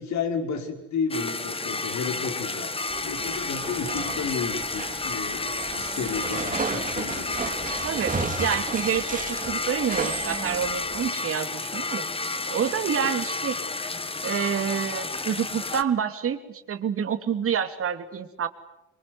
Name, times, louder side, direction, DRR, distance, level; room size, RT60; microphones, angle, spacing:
voice 1, 0.0-2.7 3.0-7.5, left 5 dB, 65° left, 5 dB, 5.2 m, -32 dB
sound 1, 1.1-15.8, left 3 dB, 20° left, 1.5 m, -31 dB
sound 2, 2.9-11.1, right 4 dB, 25° right, 2.5 m, -34 dB
voice 2, 7.8-12.1 12.5-13.6 14.2-18.5, right 8 dB, 45° right, 8 dB, 2.8 m, -28 dB
24.5 x 23.5 x 9.6 m, 0.91 s
supercardioid pair, 80°, 30 cm